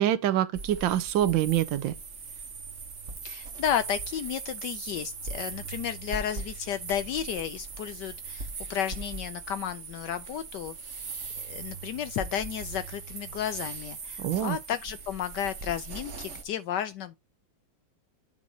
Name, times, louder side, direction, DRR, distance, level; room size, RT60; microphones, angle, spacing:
voice 1, 0.0-1.9 14.2-14.6, right 12 dB, 80° right, 1.5 m, -25 dB
sound 1, 0.5-16.4, right 4 dB, 40° right, 1.3 m, -40 dB
voice 2, 3.2-10.7 11.4-17.2, left 9 dB, 70° left, 1.1 m, -33 dB
9.0 x 3.0 x 5.2 m
omnidirectional pair, 2.1 m